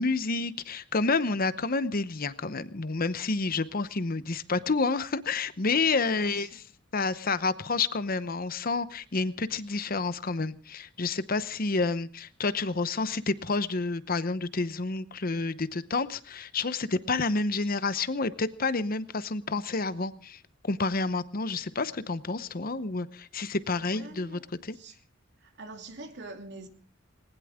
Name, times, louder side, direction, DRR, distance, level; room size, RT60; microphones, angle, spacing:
voice 1, 0.0-6.6 6.9-20.4 20.6-24.8, left 3 dB, 50° left, 0.9 m, -29 dB
voice 2, 5.9-6.6 23.8-24.4 24.7-25.0 25.4-26.7, right 2 dB, 60° right, 2.8 m, -45 dB
20.0 x 19.5 x 3.6 m
head